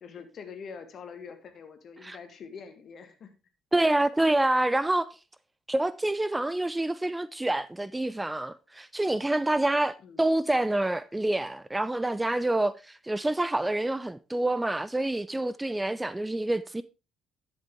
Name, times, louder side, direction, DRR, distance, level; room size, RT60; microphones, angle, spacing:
voice 1, 0.0-3.3 10.0-10.2, left 6 dB, 50° left, 1.8 m, -44 dB
voice 2, 3.7-5.1 5.7-16.8, right 1 dB, 15° right, 0.5 m, -27 dB
11.0 x 7.8 x 3.5 m
figure-of-eight pair, 45°, 0 cm